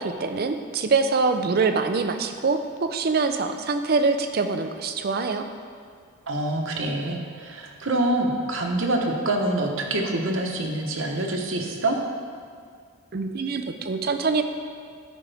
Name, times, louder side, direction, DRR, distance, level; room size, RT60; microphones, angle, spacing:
voice 1, 0.0-5.5 13.1-14.4, right 4 dB, 45° right, 7 dB, 0.5 m, -24 dB
voice 2, 6.3-12.0, right 1 dB, 65° right, 1 dB, 1.0 m, -26 dB
13.0 x 5.1 x 3.4 m, 2.2 s
head